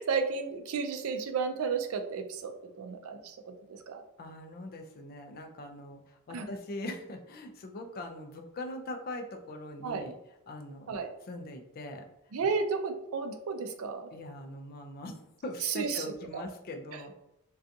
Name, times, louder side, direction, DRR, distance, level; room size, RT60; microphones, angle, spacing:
voice 1, 0.0-4.0 6.3-6.5 9.8-10.1 10.9-11.1 12.3-14.1 15.6-16.4, right 5 dB, 70° right, 6 dB, 0.4 m, -33 dB
voice 2, 4.2-6.0 6.3-10.1 10.5-11.0 11.3-12.1 14.1-17.2, left 1 dB, 45° left, 4 dB, 0.3 m, -41 dB
2.5 x 2.3 x 2.6 m, 0.87 s
head